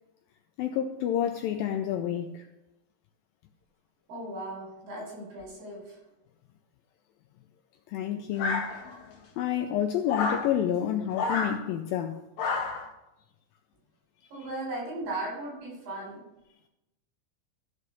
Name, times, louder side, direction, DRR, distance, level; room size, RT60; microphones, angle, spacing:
voice 1, 0.6-2.5 7.9-8.7 9.4-12.2, left 10 dB, 85° left, 2.1 m, -29 dB
voice 2, 4.1-6.0 14.3-16.2, right 2 dB, 75° right, 6.7 m, -37 dB
sound 1, 8.4-9.1 10.1-10.5 11.1-11.6 12.4-12.9, left 4 dB, 60° left, 2.2 m, -30 dB
14.0 x 5.0 x 6.9 m
omnidirectional pair, 4.7 m